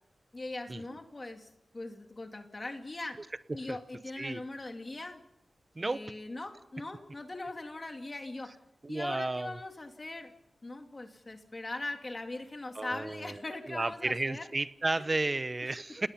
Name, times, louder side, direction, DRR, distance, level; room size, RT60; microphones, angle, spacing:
voice 1, 0.3-3.2 3.5-5.2 5.8-8.5 8.9-10.3 10.6-14.5 15.0-15.2 15.6-15.7, left 2 dB, 25° left, 5 dB, 2.3 m, -40 dB
voice 2, 8.8-9.6 12.7-13.4 13.7-16.1, right 2 dB, 25° right, 15 dB, 0.8 m, -33 dB
30.0 x 19.0 x 5.8 m, 0.81 s
wide cardioid pair, 155°, 0 cm